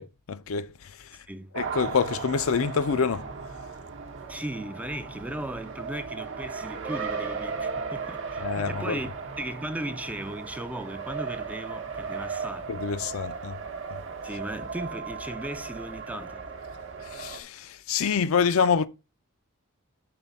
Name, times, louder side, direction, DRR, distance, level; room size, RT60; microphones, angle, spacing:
voice 1, 0.0-1.2 1.5-3.5 8.4-9.0 12.7-13.6 17.0-18.9, left 6 dB, 65° left, 0.5 m, -27 dB
Race car auto racing, 1.5-17.4, right 5 dB, 60° right, 0.9 m, -36 dB
voice 2, 4.3-9.1 9.4-12.7 14.2-16.5, right 1 dB, 5° right, 0.4 m, -36 dB
Guitar, 6.6-12.1, right 4 dB, 30° right, 0.9 m, -46 dB
6.0 x 4.1 x 5.3 m
head